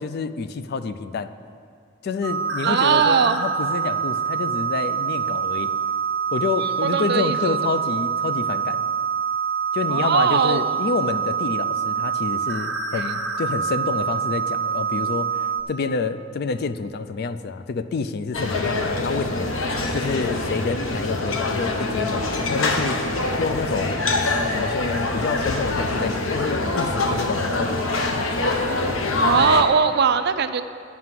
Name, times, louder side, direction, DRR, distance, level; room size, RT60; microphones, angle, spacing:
voice 1, 0.0-1.3 2.0-5.7 6.3-8.8 9.7-19.5 19.9-23.0 23.4-24.0 24.5-28.1, left 4 dB, 50° left, 11 dB, 0.4 m, -28 dB
sound 1, 2.2-15.6, right 6 dB, 75° right, 1.3 m, -25 dB
voice 2, 2.6-3.4 6.6-7.6 9.9-10.8 19.9-20.0 29.2-30.6, right 6 dB, 55° right, 11 dB, 0.4 m, -20 dB
sound 2, 18.3-29.6, left 2 dB, 85° left, 0.9 m, -24 dB
9.5 x 5.9 x 7.5 m, 2.3 s
head